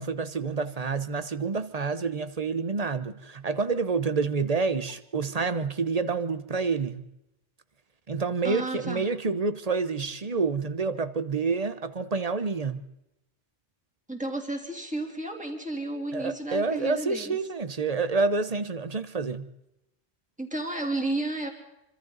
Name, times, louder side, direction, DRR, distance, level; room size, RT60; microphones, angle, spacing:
voice 1, 0.0-7.1 8.1-12.8 16.1-19.5, right 4 dB, 40° right, 1.0 m, -28 dB
voice 2, 8.4-9.0 14.1-17.4 20.4-21.5, right 2 dB, 5° right, 3.1 m, -32 dB
26.0 x 25.5 x 4.0 m
omnidirectional pair, 1.1 m